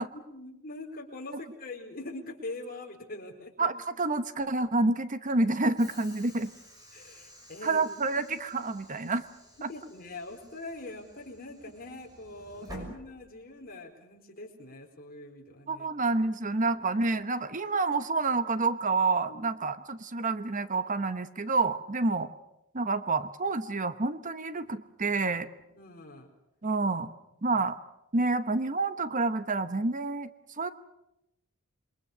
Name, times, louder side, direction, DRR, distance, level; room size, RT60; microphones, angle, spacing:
voice 1, 0.3-3.7 6.9-7.9 8.2-8.3 9.7-15.9 19.3-19.4 25.1-25.2 25.7-26.3 27.5-27.6, left 2 dB, 45° left, 2 dB, 4.3 m, -43 dB
voice 2, 3.6-6.5 7.6-9.2 9.6-9.7 12.7-12.9 15.7-22.3 22.7-25.5 26.6-27.1 27.4-27.8 28.1-30.3 30.6-30.7, right 3 dB, 35° right, 12 dB, 1.0 m, -28 dB
Train / Sliding door, 5.8-13.7, equal, 20° right, 6.3 m, -52 dB
28.0 x 22.5 x 6.7 m, 0.87 s
head